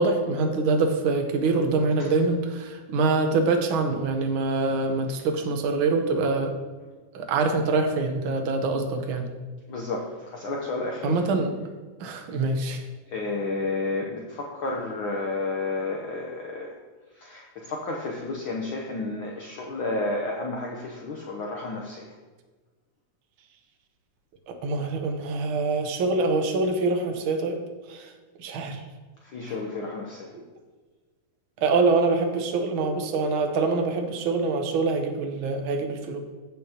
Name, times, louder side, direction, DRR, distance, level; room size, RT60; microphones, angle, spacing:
voice 1, 0.0-6.5 7.1-9.3 11.0-11.5 12.0-12.8 24.5-27.6 27.9-28.1 28.4-28.8 29.5-29.6 30.3-30.4 31.6-36.2, right 3 dB, 70° right, 5 dB, 1.2 m, -25 dB
voice 2, 9.7-11.2 13.1-16.8 17.2-22.1 29.3-30.3, left 2 dB, 85° left, -1 dB, 1.1 m, -31 dB
15.5 x 5.7 x 2.9 m, 1.3 s
omnidirectional pair, 3.5 m